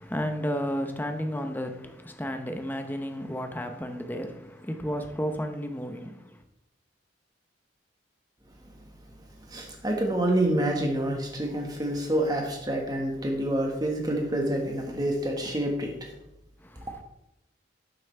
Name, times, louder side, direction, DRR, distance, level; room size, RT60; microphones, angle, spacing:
voice 1, 0.0-6.4 16.6-17.0, equal, 10° left, 0.8 m, -33 dB
voice 2, 9.5-16.1, right 1 dB, 20° right, 1.6 m, -27 dB
12.0 x 7.1 x 3.4 m
head